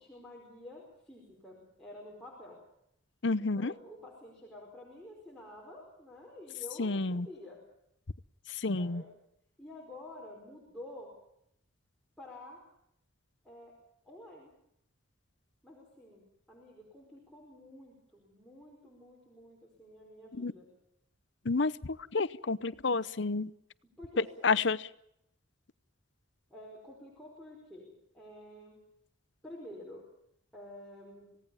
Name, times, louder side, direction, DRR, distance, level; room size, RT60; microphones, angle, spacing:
voice 1, 0.0-2.6 3.4-7.6 8.7-9.0 9.6-11.1 12.2-12.6 13.4-13.7 14.0-14.5 15.6-20.7 24.0-24.6 26.5-27.9 28.1-28.8 29.4-30.0 30.5-31.3, left 1 dB, 5° left, -4 dB, 5.1 m, -50 dB
voice 2, 3.2-3.7 6.8-7.3 8.5-9.0 20.4-20.5 21.4-23.5 24.2-24.9, left 3 dB, 60° left, 17 dB, 0.8 m, -30 dB
27.0 x 18.0 x 7.2 m, 0.76 s
head